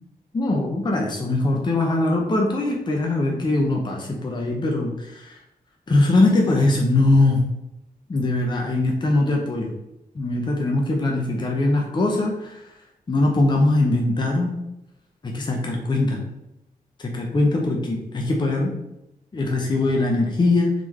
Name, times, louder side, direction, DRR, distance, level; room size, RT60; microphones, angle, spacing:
voice 1, 0.3-5.4 5.9-7.4 8.1-9.7 10.1-12.6 13.1-14.5 15.2-16.2 17.0-18.7 19.3-20.7, left 2 dB, 30° left, 0 dB, 0.6 m, -21 dB
3.7 x 3.4 x 3.0 m, 0.88 s
wide cardioid pair, 145°, 15 cm